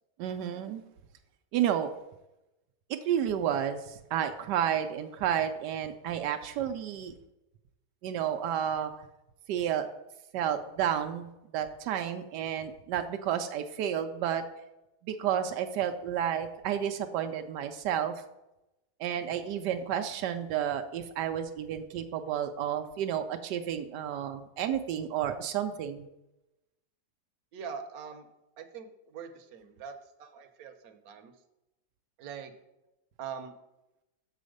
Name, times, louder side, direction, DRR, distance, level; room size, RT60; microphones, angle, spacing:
voice 1, 0.2-0.8 1.5-1.9 2.9-7.1 8.0-8.9 9.5-9.9 10.3-11.3 11.5-14.4 15.0-18.1 19.0-26.1, right 9 dB, 90° right, 7 dB, 1.2 m, -31 dB
voice 2, 27.5-28.3 28.6-31.3 32.2-32.5 33.2-33.5, right 6 dB, 65° right, 6 dB, 1.2 m, -43 dB
7.0 x 4.1 x 6.4 m, 0.92 s
omnidirectional pair, 1.8 m